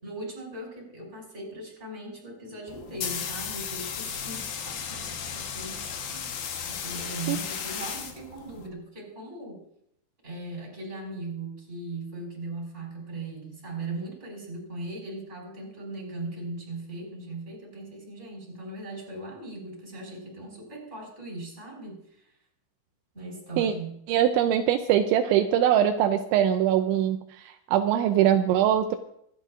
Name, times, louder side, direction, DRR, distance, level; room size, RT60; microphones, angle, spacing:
voice 1, 0.0-6.3 6.7-9.6 10.2-22.2 23.1-24.0, right 2 dB, 15° right, -1 dB, 4.9 m, -39 dB
sound 1, 2.7-8.7, left 7 dB, 75° left, 2.0 m, -35 dB
voice 2, 24.1-29.0, right 10 dB, 85° right, 6 dB, 2.6 m, -22 dB
24.5 x 11.0 x 2.5 m, 0.72 s
omnidirectional pair, 6.0 m